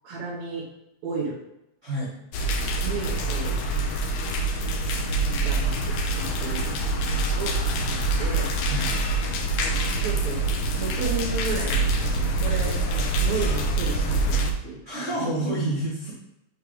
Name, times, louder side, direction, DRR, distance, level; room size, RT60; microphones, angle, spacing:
voice 1, 0.0-0.7 1.0-1.4 2.8-3.7 4.6-4.7 5.0-8.5 9.6-10.4 10.8-15.2, right 4 dB, 70° right, -8 dB, 2.4 m, -34 dB
voice 2, 1.8-2.2 8.7-9.0 14.8-16.1, right 1 dB, 40° right, -8 dB, 1.0 m, -28 dB
sound 1, 2.3-14.5, right 2 dB, 75° left, 1.7 m, -25 dB
6.4 x 3.3 x 4.9 m, 0.86 s
omnidirectional pair, 3.4 m